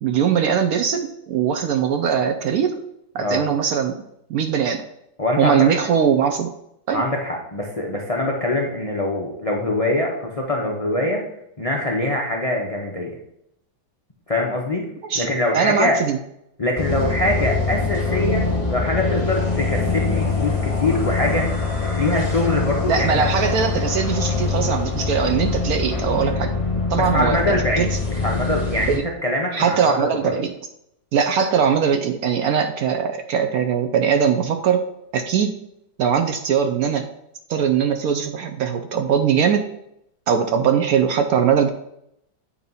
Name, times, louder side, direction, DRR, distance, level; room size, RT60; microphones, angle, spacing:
voice 1, 0.0-2.8 3.1-4.0 4.3-4.8 5.4-6.5 6.9-7.0 15.0-15.3 15.5-16.2 22.9-26.5 26.9-27.9 28.9-29.0 29.5-30.5 31.1-34.8 35.1-35.5 36.0-37.1 37.5-39.7 40.3-41.7, right 7 dB, 70° right, 7 dB, 0.8 m, -21 dB
voice 2, 5.2-5.8 6.9-11.2 11.6-13.1 14.3-14.9 15.1-16.0 16.6-23.2 26.9-30.4, left 1 dB, 60° left, -1 dB, 0.3 m, -23 dB
sound 1, 16.7-29.0, left 3 dB, 20° left, 1.3 m, -23 dB
8.5 x 2.9 x 5.4 m, 0.78 s
omnidirectional pair, 2.0 m